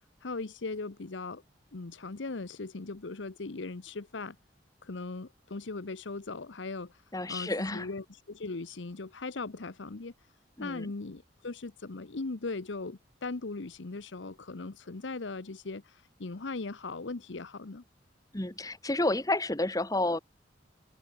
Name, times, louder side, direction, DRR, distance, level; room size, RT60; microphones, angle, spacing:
voice 1, 0.2-1.4 1.7-4.4 4.8-7.0 7.3-10.1 10.6-17.8, left 3 dB, 75° left, 0.9 m, -39 dB
voice 2, 7.1-7.9 10.6-10.9 18.3-20.2, left 2 dB, 20° left, 1.5 m, -30 dB
head